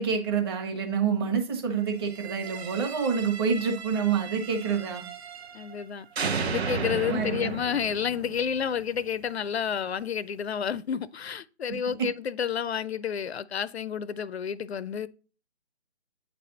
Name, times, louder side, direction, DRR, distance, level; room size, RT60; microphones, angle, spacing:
voice 1, 0.0-5.0 7.1-7.5 12.0-12.1, right 6 dB, 20° right, 1.0 m, -27 dB
sound 1, 2.0-5.8 6.2-9.2, right 4 dB, 70° right, 0.8 m, -35 dB
voice 2, 5.5-6.1 6.4-15.1, left 8 dB, 70° left, 0.5 m, -30 dB
8.3 x 3.4 x 3.9 m
figure-of-eight pair, 150°, 33 cm